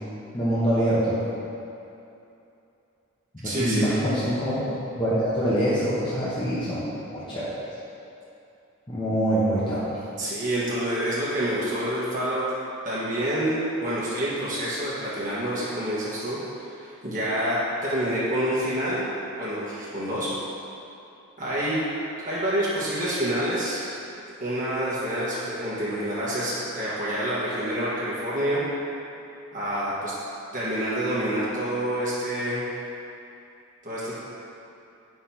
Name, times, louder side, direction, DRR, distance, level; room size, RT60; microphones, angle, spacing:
voice 1, 0.3-1.2 3.4-4.7 5.0-6.9 7.1-7.5 8.9-9.8, right 1 dB, 20° left, -10 dB, 1.0 m, -24 dB
voice 2, 3.4-4.0 10.2-12.5 12.8-19.1 19.4-20.3 21.4-21.8 22.2-23.8 24.4-28.6 29.5-30.1 30.5-32.8 33.8-34.2, right 1 dB, 35° right, -9 dB, 1.4 m, -27 dB
9.8 x 5.9 x 2.9 m, 2.7 s
head